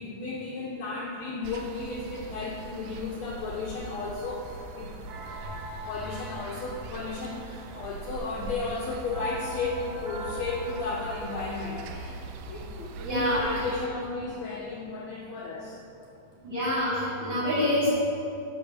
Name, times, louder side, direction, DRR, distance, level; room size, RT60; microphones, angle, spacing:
voice 1, 0.0-4.9 5.8-15.8, left 3 dB, 80° left, -2 dB, 1.6 m, -34 dB
sound 1, 1.4-13.9, right 4 dB, 85° right, 2.3 m, -41 dB
sound 2, 5.1-11.7, equal, 60° right, 3.3 m, -43 dB
voice 2, 13.0-13.4 16.4-17.9, left 1 dB, 35° right, -13 dB, 2.9 m, -26 dB
12.0 x 4.6 x 5.9 m, 2.7 s
omnidirectional pair, 4.0 m